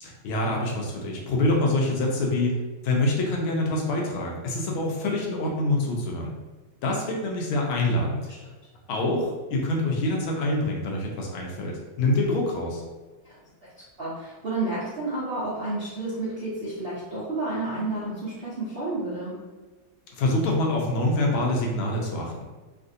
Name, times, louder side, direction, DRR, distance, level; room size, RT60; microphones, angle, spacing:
voice 1, 0.0-2.6 2.8-6.3 6.8-8.3 8.9-12.8 20.2-22.4, left 2 dB, 80° left, -1 dB, 1.5 m, -25 dB
voice 2, 14.0-19.4, right 2 dB, 80° right, -9 dB, 0.5 m, -30 dB
3.6 x 2.5 x 2.6 m, 1.3 s
omnidirectional pair, 2.2 m